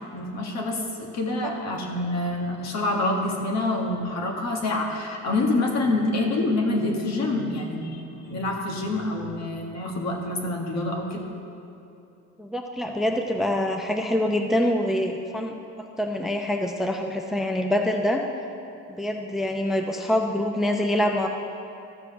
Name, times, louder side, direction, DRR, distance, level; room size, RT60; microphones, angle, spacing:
voice 1, 0.1-11.2, left 2 dB, 55° left, 1 dB, 1.7 m, -27 dB
voice 2, 12.4-15.5 16.0-18.2 19.0-21.3, left 1 dB, ahead, 3 dB, 0.6 m, -25 dB
13.5 x 4.9 x 7.1 m, 2.9 s
cardioid pair, 105°, 32 cm